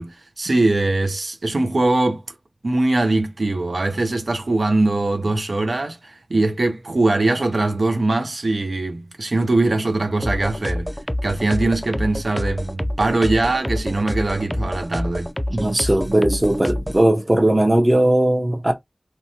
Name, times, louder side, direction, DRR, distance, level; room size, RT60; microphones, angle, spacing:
voice 1, 0.0-2.2 2.6-10.9 11.2-15.3, right 2 dB, 85° right, 0.5 m, -21 dB
sound 1, 10.2-17.0, left 1 dB, 10° left, 0.3 m, -27 dB
voice 2, 15.5-18.7, right 1 dB, 30° right, 0.6 m, -18 dB
2.7 x 2.1 x 2.7 m
wide cardioid pair, 55°, 0 cm